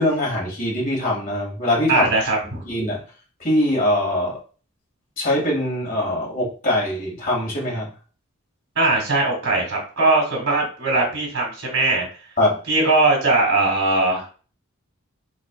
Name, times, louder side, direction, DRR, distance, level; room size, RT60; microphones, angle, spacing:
voice 1, 0.0-2.1 2.7-3.0 3.4-4.4 5.2-7.9 12.4-12.6, left 1 dB, 40° left, -3 dB, 1.8 m, -22 dB
voice 2, 1.9-2.6 8.8-12.1 12.7-14.3, right 2 dB, 65° right, 0 dB, 1.9 m, -20 dB
4.3 x 3.9 x 2.2 m, 0.38 s
head